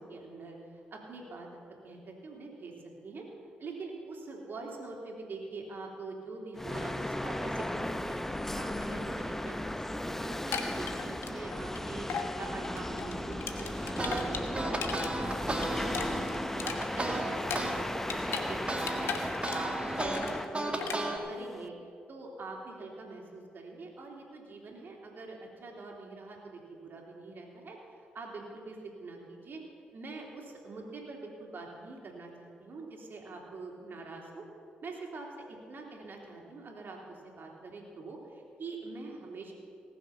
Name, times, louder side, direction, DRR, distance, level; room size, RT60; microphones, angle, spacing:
voice 1, 0.0-1.5 1.8-2.7 3.0-3.2 3.6-8.2 8.5-9.2 9.4-9.8 10.1-12.1 12.4-16.2 16.5-19.1 19.5-20.3 20.5-21.7 22.1-27.8 28.1-29.6 29.9-34.4 34.8-35.3 35.7-39.5, right 3 dB, 55° right, 0 dB, 3.1 m, -44 dB
sound 1, 6.6-21.7, left 1 dB, 10° left, 0.7 m, -36 dB
sound 2, 10.3-11.8 12.1-12.3 12.6-15.1 15.4-18.5 18.7-19.7 20.0-20.4 20.8-21.0, left 6 dB, 70° left, 1.2 m, -37 dB
sound 3, 14.0-17.7 18.1-21.2, right 2 dB, 25° right, 2.0 m, -35 dB
19.0 x 7.1 x 5.9 m, 2.3 s
hypercardioid pair, 45°, 4 cm